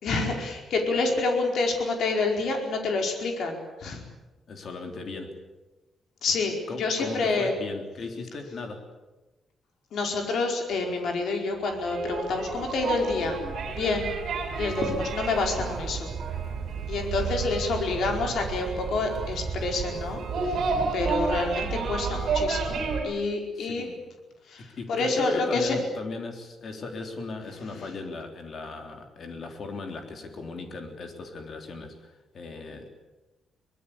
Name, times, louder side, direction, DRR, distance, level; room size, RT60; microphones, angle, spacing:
voice 1, 0.0-4.0 6.2-7.5 9.9-13.4 13.7-14.1 14.6-16.1 16.9-23.8 24.5-25.8 27.6-27.9, left 3 dB, 60° left, 2 dB, 4.8 m, -28 dB
voice 2, 4.5-5.4 6.7-8.9 16.4-16.5 23.6-24.0 24.6-33.0, left 3 dB, 40° left, 4 dB, 3.5 m, -37 dB
sound 1, 11.6-23.0, right 4 dB, 55° right, 7.6 m, -31 dB
24.0 x 20.5 x 8.6 m, 1.1 s
wide cardioid pair, 175°, 0 cm